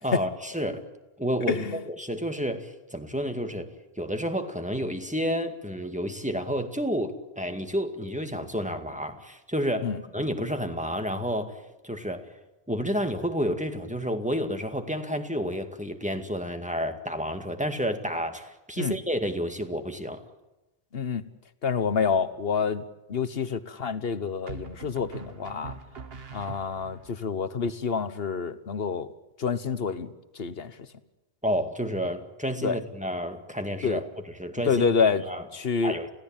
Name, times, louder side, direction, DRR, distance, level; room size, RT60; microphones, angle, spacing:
voice 1, 0.0-0.8 1.2-11.6 11.8-12.3 12.7-20.2 31.4-34.0 34.4-34.8 35.3-35.4 35.8-36.1, equal, 5° right, 6 dB, 2.0 m, -30 dB
voice 2, 1.5-1.8 9.8-10.0 18.8-19.0 20.9-21.2 21.6-22.8 23.1-25.8 26.3-29.1 29.4-30.8 32.6-32.8 33.8-34.0 34.6-35.2 35.5-36.0, left 5 dB, 65° left, 13 dB, 1.4 m, -27 dB
sound 1, 21.8-22.4 24.5-27.1, right 5 dB, 70° right, 1.4 m, -43 dB
30.0 x 16.5 x 9.0 m, 1.0 s
omnidirectional pair, 1.1 m